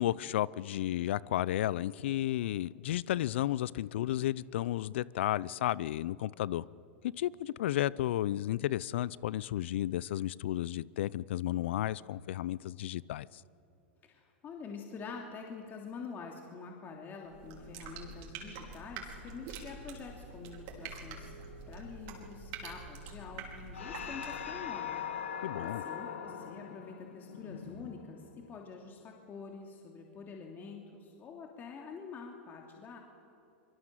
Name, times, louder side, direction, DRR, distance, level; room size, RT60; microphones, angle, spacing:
voice 1, 0.0-6.6 7.2-13.3 25.4-25.8, left 13 dB, 70° left, 22 dB, 0.6 m, -33 dB
voice 2, 14.0-21.3 21.7-25.0 25.2-33.0, left 5 dB, 30° left, 1 dB, 2.9 m, -46 dB
sound 1, 17.2-24.5, right 4 dB, 55° right, 5.0 m, -46 dB
sound 2, 23.7-28.5, left 8 dB, 85° left, 2.6 m, -41 dB
24.5 x 23.5 x 7.6 m, 2.6 s
hypercardioid pair, 110°, 7 cm